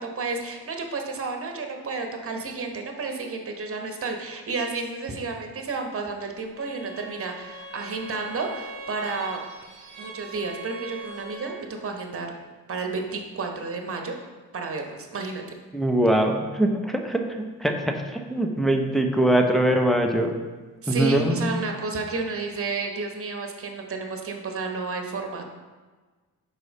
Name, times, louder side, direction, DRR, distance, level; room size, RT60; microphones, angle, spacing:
voice 1, 0.0-9.4 10.0-12.3 12.7-14.1 14.5-15.4 20.8-25.4, right 3 dB, 30° right, 3 dB, 1.2 m, -31 dB
Bowed string instrument, 6.6-11.7, right 3 dB, 90° right, 1.2 m, -41 dB
voice 2, 15.7-20.3 20.9-21.7, right 1 dB, ahead, 3 dB, 0.9 m, -23 dB
5.7 x 4.7 x 4.2 m, 1.3 s
hypercardioid pair, 55°, 41 cm